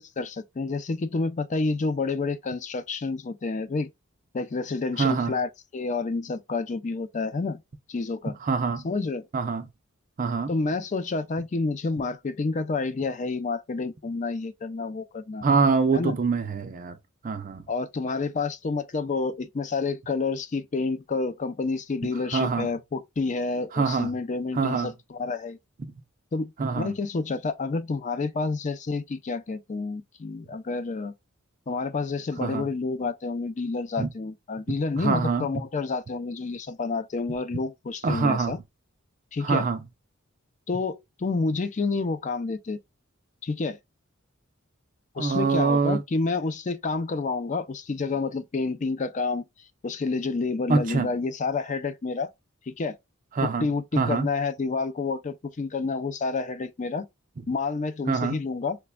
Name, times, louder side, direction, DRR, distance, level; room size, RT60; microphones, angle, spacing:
voice 1, 0.2-3.9 4.3-7.6 7.9-8.4 8.8-9.2 10.5-15.4 15.9-16.1 17.7-25.6 26.3-31.1 31.7-38.6 39.3-39.6 40.7-42.8 43.4-43.8 45.1-49.5 49.8-52.3 52.7-53.0 53.4-57.1 57.5-58.8, left 3 dB, 35° left, 0.4 m, -29 dB
voice 2, 5.0-5.4 8.4-8.8 9.3-9.7 10.2-10.5 15.4-17.0 17.2-17.6 22.3-22.7 23.7-24.1 24.5-24.9 25.8-25.9 26.6-26.9 32.4-32.7 34.0-34.1 35.0-35.5 38.0-38.6 39.4-39.8 45.2-46.0 50.7-51.1 53.4-53.7 54.0-54.3 58.1-58.4, right 4 dB, 40° right, 0.4 m, -24 dB
4.8 x 2.2 x 2.2 m
head